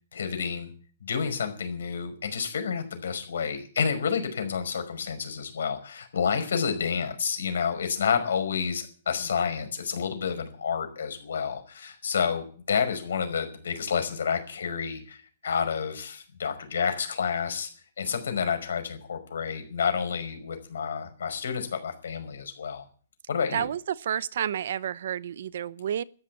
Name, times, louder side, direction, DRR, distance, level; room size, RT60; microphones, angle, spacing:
voice 1, 0.1-0.7 1.0-17.7 18.0-22.8 23.3-23.6, left 6 dB, 80° left, 5.2 m, -29 dB
voice 2, 23.5-26.0, right 9 dB, 50° right, 0.7 m, -30 dB
13.5 x 11.5 x 8.4 m
hypercardioid pair, 180°, 0 cm